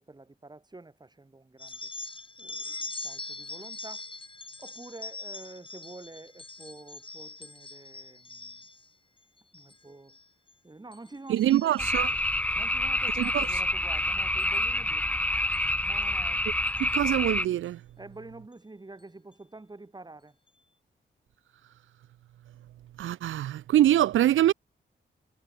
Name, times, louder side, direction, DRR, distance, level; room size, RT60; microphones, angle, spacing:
voice 1, 0.0-1.9 2.4-4.1 4.6-8.6 9.5-10.2 10.6-12.2 12.6-15.1 15.8-16.4 18.0-20.4, right 2 dB, 20° right, 7.4 m, -48 dB
sound 1, 1.6-8.9 9.4-9.8 10.1-10.5 10.9-12.3 13.2-13.5 14.4-14.6 15.5-15.6 16.0-16.1 16.7-16.9, left 3 dB, 25° left, 3.5 m, -42 dB
voice 2, 11.3-12.1 13.2-13.5 16.8-17.8 23.0-24.5, right 13 dB, 85° right, 0.4 m, -24 dB
sound 2, 11.8-17.5, left 1 dB, 5° left, 1.0 m, -27 dB
wide cardioid pair, 105°, 20 cm